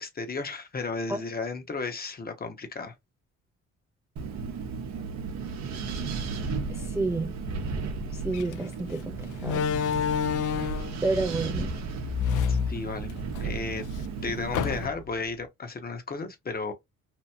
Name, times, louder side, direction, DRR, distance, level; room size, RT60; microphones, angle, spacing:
voice 1, 0.0-2.9 12.5-13.1 13.4-13.8 14.2-16.7, left 4 dB, 30° left, 0.8 m, -34 dB
voice 2, 1.1-1.5 6.7-7.3 8.1-9.7 11.0-11.7, right 3 dB, 10° right, 0.3 m, -30 dB
Wind, 4.2-14.9, right 4 dB, 65° right, 0.8 m, -34 dB
Slam, 8.3-8.5 9.4-11.0 12.0-13.4 13.8-13.9 14.5-15.2, left 7 dB, 80° left, 0.5 m, -28 dB
2.9 x 2.5 x 2.2 m
cardioid pair, 90°, 30 cm